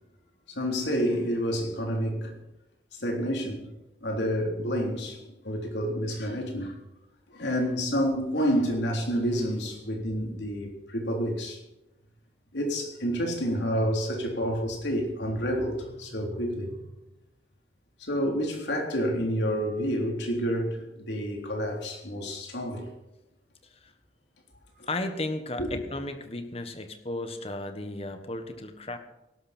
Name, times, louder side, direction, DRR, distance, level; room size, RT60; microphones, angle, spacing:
voice 1, 0.6-2.3 3.0-3.7 4.0-5.2 5.4-6.8 7.3-11.6 12.5-16.8 18.0-22.9 24.8-24.9 25.6-25.8, equal, 85° left, 3.6 m, -29 dB
voice 2, 24.9-29.0, left 2 dB, 35° left, 1.5 m, -34 dB
18.0 x 12.0 x 4.5 m
head